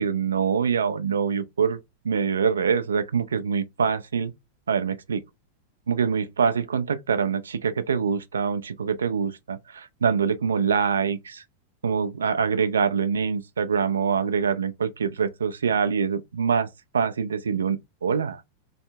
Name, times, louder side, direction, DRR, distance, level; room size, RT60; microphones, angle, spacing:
voice 1, 0.0-1.8 2.0-4.3 4.7-5.2 5.9-11.4 11.8-16.7 16.9-18.4, right 6 dB, 70° right, 0.4 m, -25 dB
3.5 x 3.1 x 2.7 m
figure-of-eight pair, 90°, 0 cm